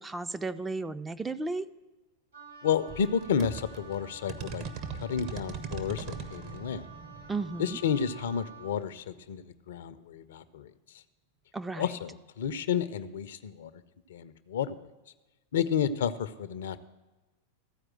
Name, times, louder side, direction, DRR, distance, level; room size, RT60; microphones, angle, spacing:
voice 1, 0.0-1.7 7.3-7.8 11.5-11.9, right 3 dB, 10° right, 10 dB, 0.4 m, -34 dB
Wind instrument woodwind instrument, 2.3-8.8, right 4 dB, 75° right, 1.2 m, -50 dB
voice 2, 2.6-4.6 5.0-6.9 7.6-10.7 11.8-13.7 14.1-14.9 15.5-16.8, left 7 dB, 60° left, 14 dB, 0.5 m, -31 dB
sound 1, 2.9-9.3, right 5 dB, 40° right, 0.8 m, -42 dB
14.0 x 4.7 x 7.4 m, 1.1 s
figure-of-eight pair, 90°, 0 cm